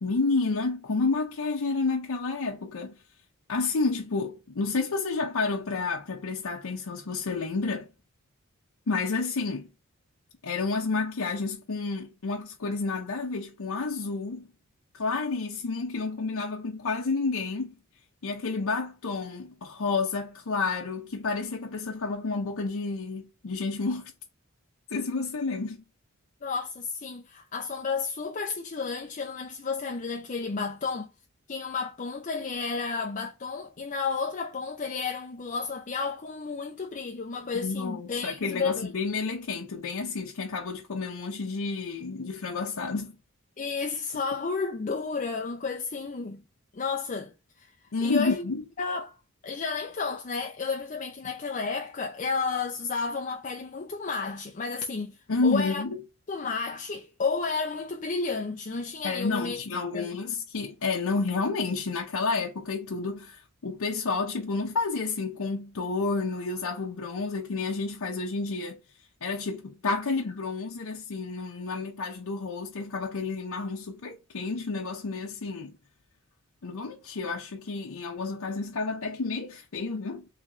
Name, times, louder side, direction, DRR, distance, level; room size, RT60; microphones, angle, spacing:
voice 1, 0.0-3.0 3.5-7.9 8.9-9.7 10.4-14.5 14.9-17.7 18.2-24.1 24.9-25.8 37.5-43.2 47.9-48.6 55.3-56.0 59.0-68.8 69.2-75.8 76.6-80.3, left 3 dB, 80° left, 0.7 m, -30 dB
voice 2, 26.4-31.1 31.5-38.9 43.6-46.4 46.7-47.7 48.0-48.5 48.8-49.2 49.4-55.8 56.3-59.6 59.9-60.2, left 4 dB, 35° left, 0.5 m, -32 dB
4.0 x 3.1 x 2.9 m
head